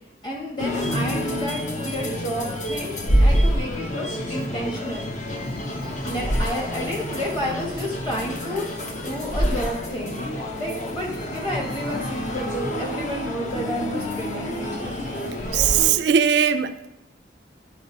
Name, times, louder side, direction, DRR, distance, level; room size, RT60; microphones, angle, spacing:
voice 1, 0.2-5.0 6.0-10.2 10.6-14.9, equal, 25° left, -2 dB, 1.5 m, -31 dB
sound 1, 0.6-15.9, equal, 40° left, 0.8 m, -27 dB
voice 2, 15.5-16.9, right 8 dB, 65° right, 9 dB, 0.3 m, -19 dB
10.5 x 4.3 x 4.0 m, 0.92 s
head